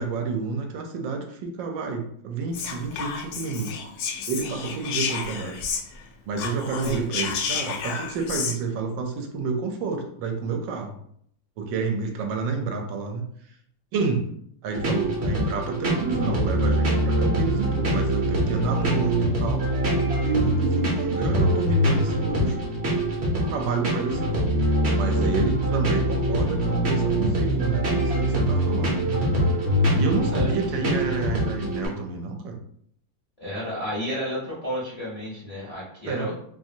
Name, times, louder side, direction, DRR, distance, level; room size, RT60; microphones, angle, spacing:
voice 1, 0.0-3.8 4.3-5.6 6.3-11.0 11.6-13.2 13.9-14.2 14.6-19.6 20.2-22.6 22.9-23.0 23.3-24.5 24.9-29.2 29.9-32.6 36.0-36.3, right 4 dB, 80° right, 3 dB, 1.2 m, -29 dB
Whispering, 2.5-6.1 6.3-8.6, left 6 dB, 75° left, 1.0 m, -31 dB
sound 1, 14.7-31.9, right 1 dB, 50° right, 0.8 m, -24 dB
voice 2, 30.3-31.0 33.4-36.4, equal, 40° left, -8 dB, 0.5 m, -32 dB
3.1 x 2.5 x 2.6 m, 0.67 s
omnidirectional pair, 2.0 m